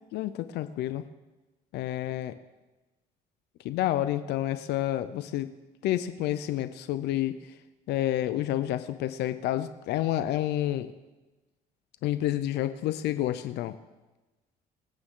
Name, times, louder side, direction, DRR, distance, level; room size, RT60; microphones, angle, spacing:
voice 1, 0.1-1.0 1.7-2.3 3.6-5.5 5.8-7.3 7.9-10.9 12.0-13.7, left 13 dB, 80° left, 12 dB, 0.7 m, -29 dB
25.5 x 8.9 x 3.8 m, 1.1 s
cardioid pair, 110°, 17 cm